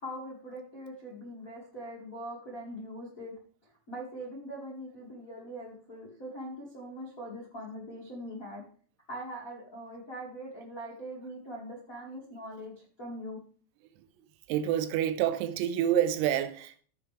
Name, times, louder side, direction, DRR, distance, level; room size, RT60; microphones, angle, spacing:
voice 1, 0.0-3.3 3.9-8.6 9.1-12.7 13.0-13.4, equal, 85° left, 0.7 m, -42 dB
voice 2, 14.5-16.8, right 11 dB, 85° right, 3.6 m, -28 dB
15.0 x 6.6 x 3.4 m
omnidirectional pair, 6.0 m